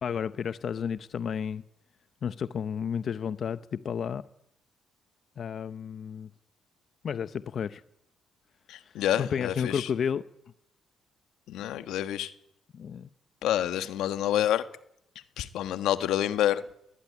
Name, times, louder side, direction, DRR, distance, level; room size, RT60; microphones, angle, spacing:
voice 1, 0.0-1.6 2.2-4.2 5.4-6.3 7.0-7.8 8.8-10.2 12.7-13.1, left 7 dB, 55° left, 0.9 m, -32 dB
voice 2, 8.7-9.9 11.5-12.3 13.4-14.6 15.4-16.6, left 11 dB, 85° left, 1.5 m, -28 dB
21.0 x 19.5 x 9.8 m
cardioid pair, 90°, 0 cm